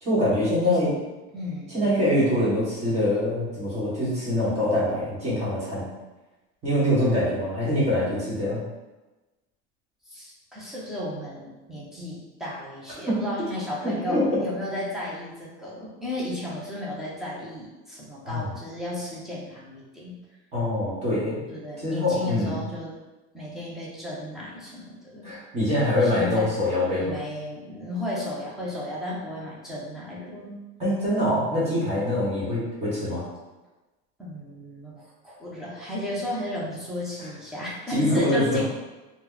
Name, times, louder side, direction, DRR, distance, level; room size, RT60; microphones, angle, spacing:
voice 1, 0.0-0.9 1.7-5.9 6.6-8.6 13.1-13.2 13.8-14.3 18.2-18.5 20.5-21.4 21.8-22.6 25.2-27.2 30.8-33.2 37.9-38.6, left 1 dB, 20° right, -8 dB, 1.1 m, -24 dB
voice 2, 1.3-1.9 10.1-20.2 21.5-23.0 23.3-25.3 26.0-26.5 27.0-30.6 34.2-38.6, left 1 dB, ahead, -7 dB, 0.4 m, -34 dB
2.9 x 2.0 x 3.8 m, 1.1 s
cardioid pair, 175°, 29 cm